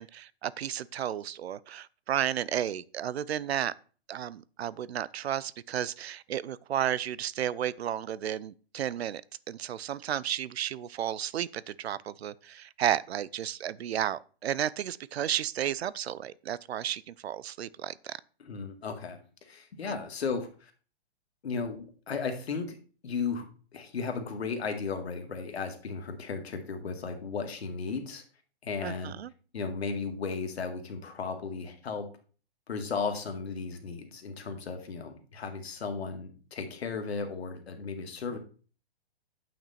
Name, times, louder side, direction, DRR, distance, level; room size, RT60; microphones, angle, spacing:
voice 1, 0.0-3.7 4.1-9.2 9.5-18.2 19.9-20.0 28.8-29.3 38.3-38.4, right 10 dB, 75° right, 0.6 m, -33 dB
voice 2, 18.4-20.7 21.4-22.8 23.0-23.5 23.7-28.2 28.6-29.1 29.5-32.1 32.7-38.4, left 5 dB, 75° left, 2.1 m, -35 dB
8.6 x 6.1 x 4.3 m
hypercardioid pair, 180°, 32 cm